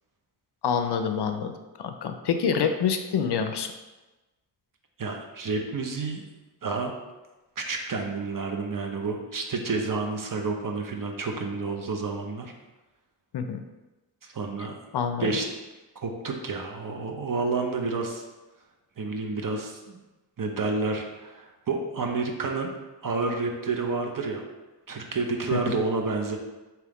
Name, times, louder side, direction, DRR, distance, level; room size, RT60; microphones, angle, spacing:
voice 1, 0.6-1.5 1.8-3.7 13.3-13.6 14.9-15.3 25.5-25.8, left 6 dB, 60° left, 7 dB, 0.5 m, -26 dB
voice 2, 5.0-6.2 6.6-6.9 7.6-12.5 14.2-14.7 15.2-15.4 16.0-18.2 19.0-20.0 20.4-22.7 23.0-24.4 24.9-26.4, right 3 dB, 45° right, 3 dB, 0.7 m, -29 dB
3.6 x 2.9 x 3.5 m, 1.1 s
cardioid pair, 40°, 47 cm